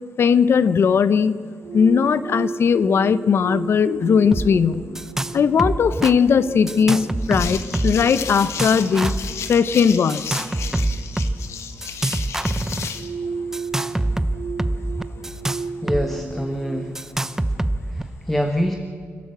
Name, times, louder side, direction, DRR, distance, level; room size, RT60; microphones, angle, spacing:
voice 1, 0.2-4.9 5.3-9.1 9.5-10.4, left 6 dB, 60° left, 15 dB, 0.7 m, -18 dB
sound 1, 1.6-16.9, right 4 dB, 75° right, 3.3 m, -35 dB
sound 2, 4.3-4.5 4.7-5.3 5.6-6.1 6.7-8.1 8.4-9.3 10.1-11.3 11.8-12.9 13.5-16.0 16.3-16.4 16.9-18.0, right 1 dB, 10° right, 0.7 m, -25 dB
sound 3, 7.2-13.1, left 7 dB, 85° left, 1.5 m, -33 dB
voice 2, 15.8-17.0 17.9-18.8, equal, 5° left, 5 dB, 1.3 m, -25 dB
29.0 x 12.5 x 7.8 m, 2.3 s
cardioid pair, 115°, 5 cm